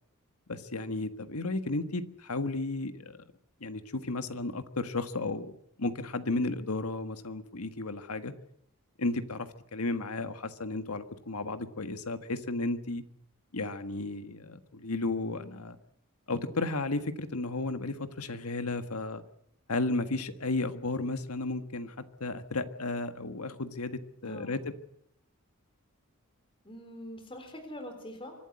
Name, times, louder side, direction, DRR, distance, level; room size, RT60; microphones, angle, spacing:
voice 1, 0.5-3.2 3.6-8.3 9.0-13.0 13.5-15.8 16.3-19.2 19.7-21.9 22.2-24.7, left 2 dB, 85° left, 9 dB, 1.6 m, -33 dB
voice 2, 24.2-24.6 26.6-28.3, equal, 25° left, 5 dB, 3.7 m, -44 dB
25.0 x 12.0 x 9.7 m, 0.74 s
head